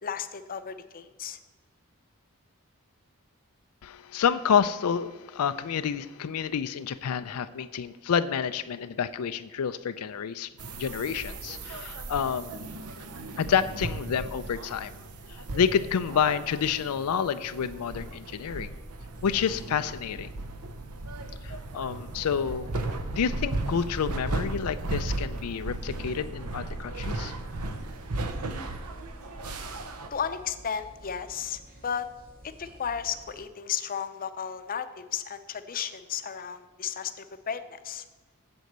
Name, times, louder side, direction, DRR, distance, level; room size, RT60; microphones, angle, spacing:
voice 1, 0.0-1.4 30.1-32.1 32.4-38.0, left 7 dB, 40° left, 10 dB, 0.6 m, -34 dB
voice 2, 3.8-10.5 10.8-12.5 13.4-14.9 15.3-18.7 19.2-20.3 21.4-22.7 23.1-27.3, left 7 dB, 85° left, 11 dB, 0.4 m, -29 dB
sound 1, 10.6-30.1, right 2 dB, 90° right, 0.9 m, -36 dB
sound 2, 26.9-33.4, right 1 dB, 40° right, 1.7 m, -51 dB
8.0 x 7.7 x 6.6 m, 1.2 s
head